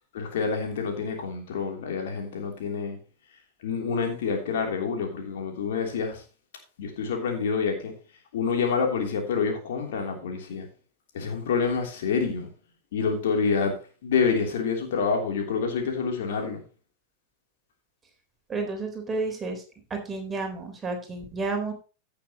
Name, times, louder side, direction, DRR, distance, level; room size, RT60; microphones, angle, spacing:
voice 1, 0.1-3.0 3.6-6.2 6.8-7.9 8.3-10.7 11.1-12.5 12.9-13.8 14.0-16.6, left 5 dB, 60° left, 3.1 m, -27 dB
voice 2, 18.5-19.6 19.9-21.7, right 3 dB, 15° right, 3.7 m, -31 dB
16.0 x 6.9 x 2.9 m
figure-of-eight pair, 90°, 0 cm